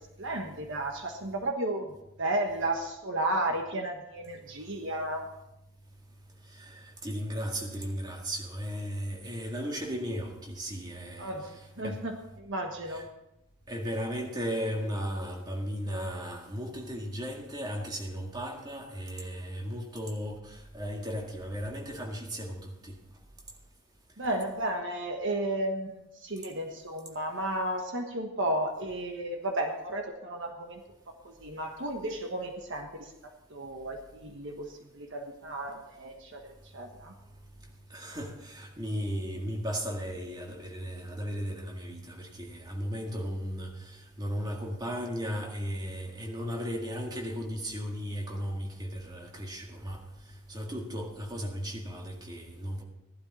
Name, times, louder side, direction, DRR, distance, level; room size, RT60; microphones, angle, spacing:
voice 1, 0.0-5.3 11.2-13.0 24.2-30.8 31.2-36.4 36.7-37.1, right 1 dB, 55° right, 3 dB, 1.3 m, -33 dB
voice 2, 7.0-11.3 11.8-12.0 12.9-13.0 13.7-20.4 20.7-22.7 37.9-43.7 44.2-50.0 50.5-52.8, equal, 20° right, 0 dB, 1.9 m, -35 dB
16.0 x 11.5 x 4.2 m, 0.88 s
head